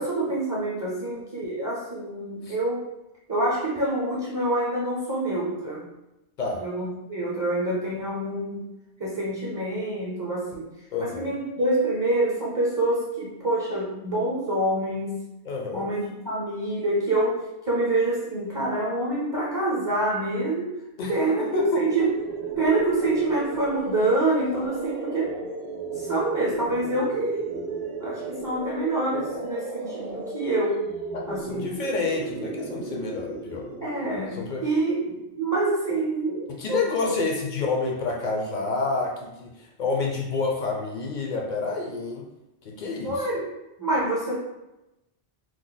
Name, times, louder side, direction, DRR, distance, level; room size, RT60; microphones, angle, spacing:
voice 1, 0.0-2.8 3.3-5.8 6.6-8.7 9.0-10.7 11.0-15.2 15.7-17.4 17.6-20.7 21.1-22.1 22.5-25.4 26.0-27.6 28.0-30.8 31.3-31.6 33.8-37.1 43.0-43.5 43.8-44.4, right 2 dB, 25° right, -6 dB, 0.5 m, -26 dB
voice 2, 10.9-11.3 15.5-15.9 21.0-21.8 31.1-33.7 34.3-34.6 36.5-42.3 42.6-43.3, left 4 dB, 55° left, 0 dB, 0.6 m, -29 dB
sound 1, 21.9-34.7, right 3 dB, 60° right, 0.7 m, -34 dB
3.1 x 2.0 x 3.8 m, 0.94 s
omnidirectional pair, 1.1 m